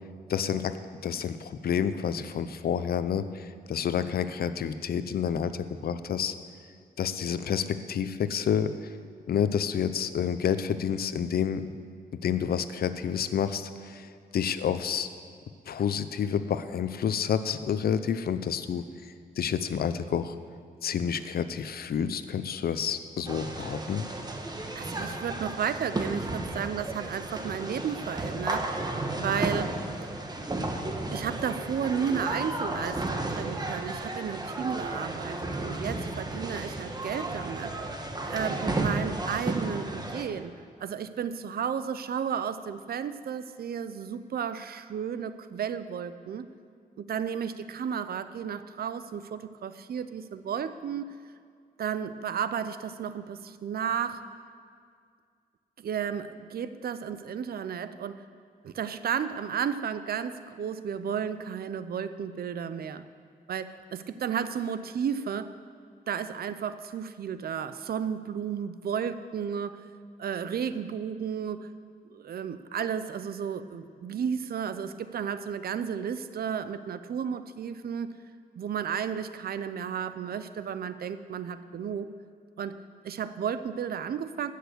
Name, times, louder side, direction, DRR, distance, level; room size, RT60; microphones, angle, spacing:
voice 1, 0.3-0.7 1.0-6.3 7.0-8.9 9.3-11.6 12.1-15.1 15.7-18.8 19.4-20.3 20.8-24.1, left 8 dB, 80° left, 12 dB, 0.6 m, -29 dB
sound 1, 23.3-40.2, right 2 dB, 25° right, 1.3 m, -33 dB
voice 2, 24.8-28.9 29.2-29.8 31.1-37.8 38.3-40.5 40.8-46.5 47.0-51.2 51.8-54.3 55.8-58.2 58.6-63.0 63.5-65.5 66.1-69.8 70.2-71.7 72.1-78.1 78.6-82.1 82.6-84.5, right 7 dB, 80° right, 12 dB, 0.6 m, -33 dB
16.0 x 6.6 x 6.8 m, 2.1 s
cardioid pair, 85°, 16 cm